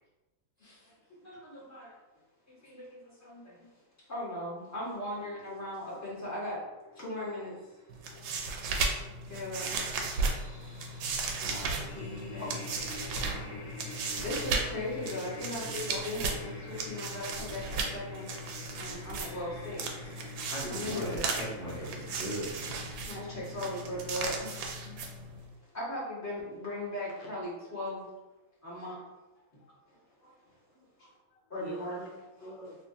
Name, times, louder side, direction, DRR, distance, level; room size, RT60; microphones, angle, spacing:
voice 1, 0.6-0.9 11.4-12.0 12.4-12.6 13.0-13.1 13.3-13.6 20.5-22.8 30.7-30.9, right 1 dB, 60° right, -8 dB, 0.6 m, -40 dB
voice 2, 1.1-1.9 2.5-3.6 4.1-6.6 6.9-7.5 8.1-8.2 8.6-8.7 9.1-9.8 11.5-12.6 13.1-13.6 14.2-18.3 18.8-20.1 20.7-21.2 23.1-25.0 25.7-28.1 28.6-29.0 29.9-30.3 31.5-32.0, left 1 dB, 10° left, -9 dB, 0.8 m, -38 dB
sound 1, 4.9-24.2, left 2 dB, 45° left, 1.4 m, -48 dB
sound 2, 7.9-25.5, right 3 dB, 75° right, 1.2 m, -36 dB
voice 3, 31.0-32.8, left 2 dB, 70° left, -3 dB, 1.3 m, -48 dB
3.4 x 2.8 x 2.7 m, 1.0 s
omnidirectional pair, 2.3 m